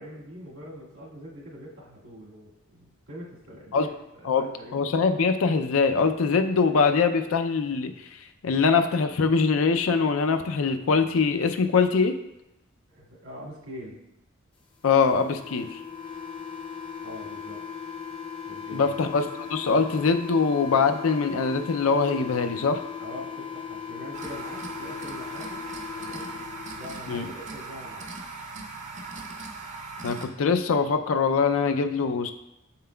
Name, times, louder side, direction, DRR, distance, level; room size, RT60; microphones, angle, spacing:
voice 1, 0.0-5.0 12.9-14.0 17.0-17.6 18.4-19.0 23.0-25.7 26.0-26.4 26.7-28.1, equal, 80° right, -5 dB, 2.0 m, -43 dB
voice 2, 4.7-7.9 8.4-12.1 14.8-15.8 18.7-22.8 27.1-27.3 30.0-32.3, left 5 dB, 75° left, 7 dB, 0.4 m, -23 dB
sound 1, 14.9-27.0, left 6 dB, 25° left, 0.6 m, -38 dB
sound 2, 24.1-30.3, right 3 dB, 35° right, 0.6 m, -39 dB
7.5 x 5.6 x 2.3 m, 0.88 s
head